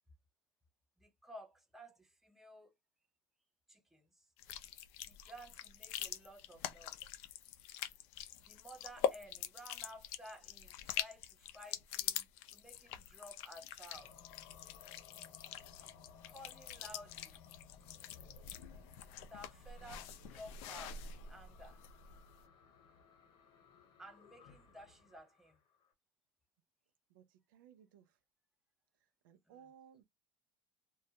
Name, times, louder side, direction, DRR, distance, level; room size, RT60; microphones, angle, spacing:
voice 1, 1.0-2.7 3.7-4.3 5.0-7.2 8.4-14.1 16.3-17.4 19.0-21.8 24.0-25.6 29.4-29.7, equal, 5° right, 0.6 m, -55 dB
sound 1, 4.4-22.3, left 10 dB, 65° left, 0.4 m, -44 dB
sound 2, 13.9-25.9, left 5 dB, 50° left, 1.0 m, -60 dB
voice 2, 27.1-28.2 29.2-30.0, right 8 dB, 90° right, 0.5 m, -61 dB
2.3 x 2.1 x 2.8 m
supercardioid pair, 115°, 11 cm